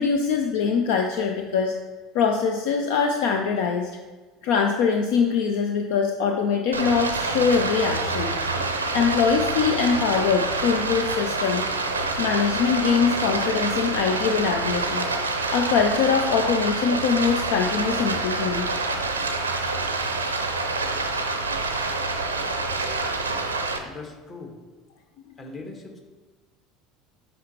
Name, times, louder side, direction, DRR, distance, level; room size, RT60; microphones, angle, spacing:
voice 1, 0.0-1.7 2.1-3.9 4.4-8.3 8.9-11.6 12.2-15.1 15.5-18.8, left 6 dB, 60° left, 4 dB, 0.5 m, -23 dB
Stream, 6.7-23.8, right 3 dB, 80° right, 0.5 m, -27 dB
voice 2, 23.8-24.5 25.4-26.0, left 3 dB, 30° left, 2 dB, 1.3 m, -40 dB
8.3 x 5.4 x 2.9 m, 1.3 s
figure-of-eight pair, 65°, 0 cm